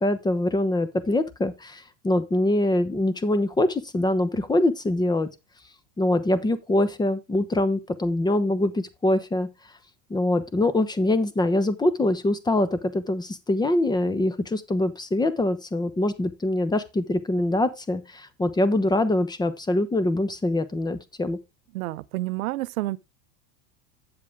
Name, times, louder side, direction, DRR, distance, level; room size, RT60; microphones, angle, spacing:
voice 1, 0.0-5.3 6.0-9.5 10.1-21.4, left 1 dB, 10° left, 0.8 m, -24 dB
voice 2, 21.7-23.0, right 18 dB, 90° right, 0.6 m, -29 dB
8.8 x 7.4 x 3.5 m
supercardioid pair, 120°, 40 cm